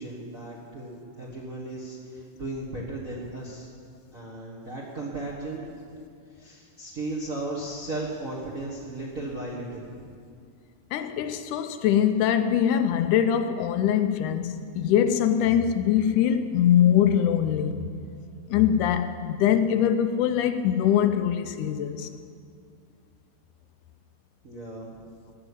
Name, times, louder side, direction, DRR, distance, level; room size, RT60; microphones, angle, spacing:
voice 1, 0.0-3.7 4.1-5.7 6.3-10.1 24.4-25.0, right 2 dB, 45° right, 1.0 m, -36 dB
voice 2, 10.9-17.9 18.5-22.1, left 9 dB, 80° left, 2.0 m, -23 dB
14.5 x 6.7 x 9.7 m
omnidirectional pair, 3.8 m